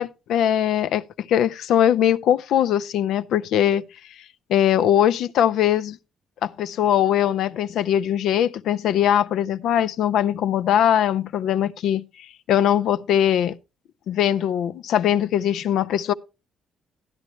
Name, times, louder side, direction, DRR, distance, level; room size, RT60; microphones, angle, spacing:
voice 1, 0.0-6.0 6.4-13.6 14.1-16.1, left 10 dB, 80° left, 0.5 m, -21 dB
12.5 x 10.0 x 3.1 m
cardioid pair, 90°, 0 cm